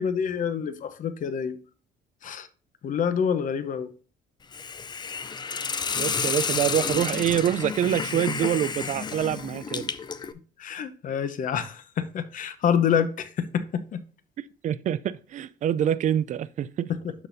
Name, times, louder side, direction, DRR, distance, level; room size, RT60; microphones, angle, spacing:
voice 1, 0.0-1.6 2.2-2.5 2.8-3.9 10.6-14.0 17.0-17.1, left 7 dB, 50° left, 0.9 m, -27 dB
Hiss, 4.5-10.3, left 5 dB, 25° left, 0.5 m, -30 dB
voice 2, 6.0-9.9 14.6-16.9, right 10 dB, 45° right, 0.4 m, -26 dB
12.0 x 4.1 x 2.6 m
cardioid pair, 110°, 17 cm